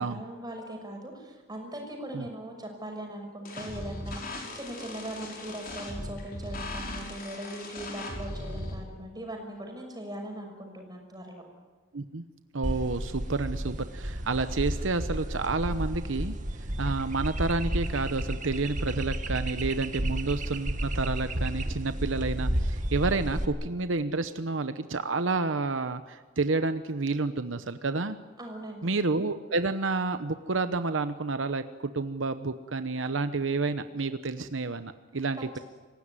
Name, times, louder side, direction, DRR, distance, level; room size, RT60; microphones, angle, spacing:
voice 1, 0.0-11.4 28.4-28.8 35.4-35.6, right 1 dB, 20° right, 2 dB, 6.2 m, -40 dB
sound 1, 3.4-8.7, left 1 dB, 50° left, 5.4 m, -38 dB
voice 2, 12.5-16.4 16.8-28.2 28.8-35.4, right 3 dB, 80° right, 10 dB, 0.9 m, -30 dB
sound 2, 12.6-23.5, right 1 dB, 40° right, 1.8 m, -32 dB
26.5 x 16.5 x 9.7 m, 1.4 s
head